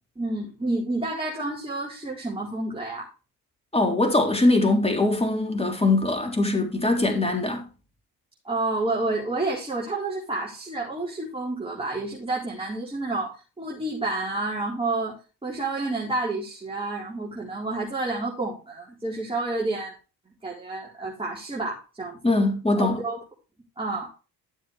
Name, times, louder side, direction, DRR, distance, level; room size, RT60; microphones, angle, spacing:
voice 1, 0.2-3.1 8.4-15.1 15.4-19.9 20.4-22.2 22.8-23.2 23.8-24.1, right 2 dB, 10° right, 4.4 m, -29 dB
voice 2, 3.7-7.7 22.2-23.0, left 2 dB, 15° left, 3.5 m, -22 dB
13.5 x 7.2 x 3.4 m
figure-of-eight pair, 50°, 45 cm